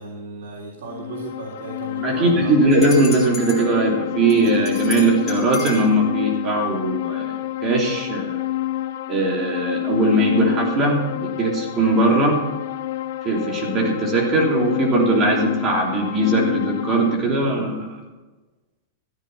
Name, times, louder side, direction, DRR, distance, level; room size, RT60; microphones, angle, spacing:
voice 1, 0.0-2.5, right 3 dB, 90° right, -3 dB, 3.7 m, -35 dB
sound 1, 0.8-17.2, left 14 dB, 65° left, 0.8 m, -28 dB
voice 2, 2.0-8.4 9.1-12.4 13.2-18.0, right 2 dB, 20° right, -1 dB, 3.2 m, -20 dB
sound 2, 2.7-3.6 4.3-5.9, left 6 dB, 20° left, 4.6 m, -33 dB
14.5 x 10.0 x 5.7 m, 1.2 s
supercardioid pair, 170°, 0 cm